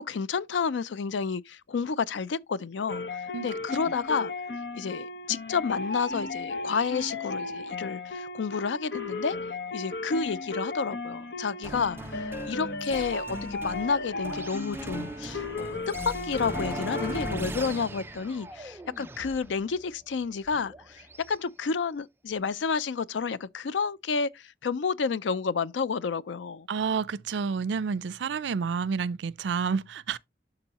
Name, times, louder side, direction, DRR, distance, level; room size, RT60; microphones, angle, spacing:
voice 1, 0.0-3.0 3.4-4.3 4.8-9.4 9.7-12.0 12.5-15.8 16.0-26.7, left 5 dB, 90° left, 0.4 m, -30 dB
sound 1, 2.9-17.3, left 3 dB, 65° left, 1.1 m, -35 dB
sound 2, 11.6-21.4, right 2 dB, 15° right, 0.4 m, -39 dB
voice 2, 26.7-30.2, right 5 dB, 80° right, 0.4 m, -29 dB
11.5 x 3.9 x 2.9 m
head